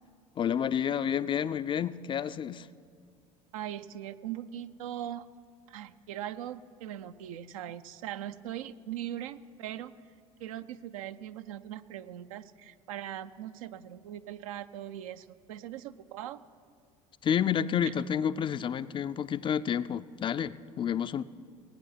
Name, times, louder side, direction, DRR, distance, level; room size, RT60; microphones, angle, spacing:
voice 1, 0.4-2.7 17.2-21.2, left 8 dB, 25° left, 15 dB, 0.4 m, -30 dB
voice 2, 3.5-5.3 5.7-9.9 10.4-16.4 17.8-17.9, right 11 dB, 70° right, 12 dB, 0.5 m, -40 dB
17.5 x 9.1 x 5.7 m, 2.2 s
hypercardioid pair, 65°, 18 cm